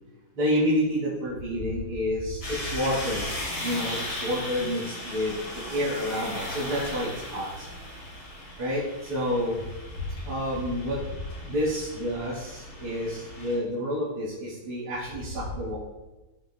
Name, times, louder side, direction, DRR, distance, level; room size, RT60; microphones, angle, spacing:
voice 1, 0.4-3.3 3.6-7.7 8.6-9.6 10.2-11.0 11.4-15.8, equal, 85° right, -9 dB, 3.5 m, -29 dB
sound 1, 2.4-13.6, left 1 dB, 65° left, 3.9 m, -37 dB
16.0 x 6.6 x 2.3 m, 1.1 s
omnidirectional pair, 2.3 m